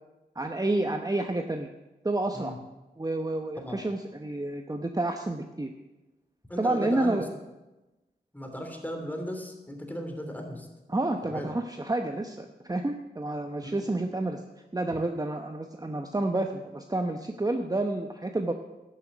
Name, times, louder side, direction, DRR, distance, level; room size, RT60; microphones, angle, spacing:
voice 1, 0.3-1.7 2.0-2.5 3.0-5.7 6.6-7.2 10.9-14.4 14.7-18.5, right 2 dB, 20° right, 5 dB, 0.9 m, -29 dB
voice 2, 6.5-7.3 8.3-10.7 11.2-11.5 13.6-13.8, equal, 10° left, 3 dB, 3.1 m, -36 dB
11.0 x 7.3 x 8.0 m, 1.1 s
cardioid pair, 40°, 18 cm